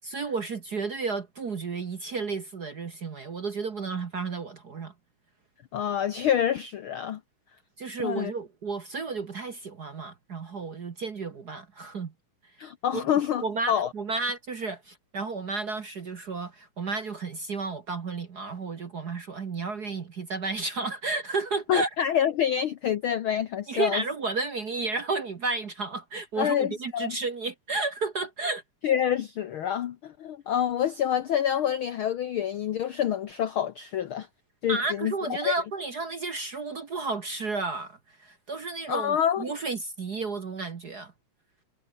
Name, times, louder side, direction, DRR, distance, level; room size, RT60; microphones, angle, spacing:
voice 1, 0.0-4.9 7.8-12.1 12.9-13.0 13.4-21.9 23.7-28.6 34.7-41.1, right 4 dB, 45° right, 1.3 m, -32 dB
voice 2, 5.7-7.2 8.0-8.3 12.6-13.9 21.7-24.0 26.4-27.2 28.8-34.3 34.6-35.1 35.4-35.5 38.9-39.5, left 9 dB, 90° left, 1.1 m, -27 dB
omnidirectional pair, 3.6 m